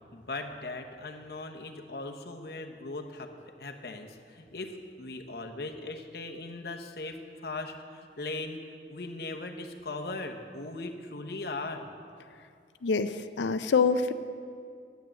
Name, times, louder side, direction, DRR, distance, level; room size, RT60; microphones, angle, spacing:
voice 1, 0.1-3.3 3.6-8.6 8.9-11.8, left 2 dB, 60° left, 5 dB, 1.0 m, -39 dB
voice 2, 12.8-14.1, left 5 dB, 85° left, 10 dB, 0.5 m, -26 dB
10.5 x 9.5 x 7.5 m, 2.3 s
head